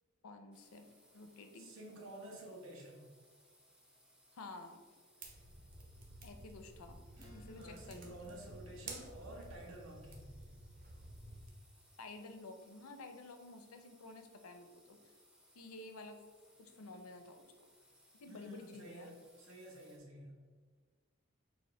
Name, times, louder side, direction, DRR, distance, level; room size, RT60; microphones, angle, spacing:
voice 1, 0.2-0.9 1.1-1.7 4.3-4.8 6.2-7.0 7.3-8.4 12.0-15.1 15.5-16.2 16.6-17.5 18.2-19.1, left 2 dB, 85° left, 7 dB, 0.6 m, -51 dB
sound 1, 0.5-20.0, equal, 5° right, 0.5 m, -68 dB
voice 2, 1.6-3.1 7.5-10.4 18.3-20.4, right 1 dB, 70° right, -1 dB, 1.0 m, -51 dB
sound 2, 5.2-11.5, right 2 dB, 40° right, 0.8 m, -52 dB
Acoustic guitar / Strum, 7.1-12.0, equal, 20° right, 1.0 m, -64 dB
6.4 x 2.5 x 3.2 m, 1.5 s
head